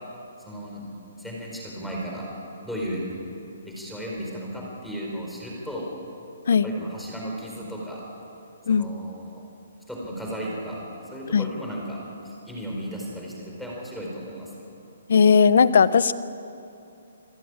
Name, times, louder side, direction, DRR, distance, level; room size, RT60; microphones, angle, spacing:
voice 1, 0.5-0.9 1.2-2.3 2.6-3.1 3.6-5.9 6.6-8.0 8.7-9.4 9.9-10.8 11.1-12.0 12.2-14.5, equal, ahead, -3 dB, 4.5 m, -34 dB
voice 2, 15.1-16.1, left 6 dB, 60° left, 15 dB, 1.0 m, -17 dB
27.5 x 14.5 x 9.8 m, 2.7 s
hypercardioid pair, 165°, 0 cm